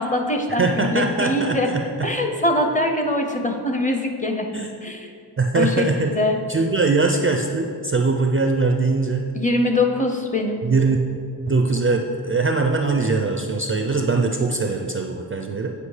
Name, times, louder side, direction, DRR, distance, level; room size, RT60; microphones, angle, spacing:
voice 1, 0.0-1.7 2.0-4.5 4.8-5.1 5.5-6.4 9.3-10.7, left 2 dB, 20° left, 3 dB, 0.6 m, -22 dB
voice 2, 0.6-2.1 4.5-4.7 5.4-6.1 6.5-9.3 10.6-11.0 11.5-15.7, right 3 dB, 30° right, 3 dB, 0.4 m, -21 dB
8.6 x 5.1 x 4.8 m, 2.4 s
wide cardioid pair, 160°, 44 cm